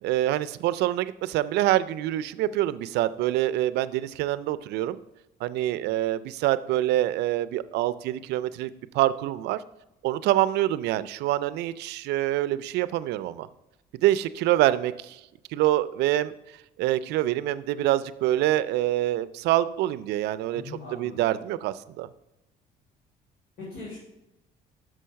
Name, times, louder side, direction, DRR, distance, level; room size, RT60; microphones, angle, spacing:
voice 1, 0.0-5.0 5.4-9.6 10.0-13.5 14.0-15.2 15.5-16.3 16.8-22.1, right 14 dB, 80° right, 16 dB, 0.4 m, -25 dB
voice 2, 20.5-21.2 23.6-24.0, left 2 dB, 75° left, -6 dB, 3.3 m, -40 dB
6.3 x 5.6 x 6.3 m, 0.92 s
cardioid pair, 110°, 17 cm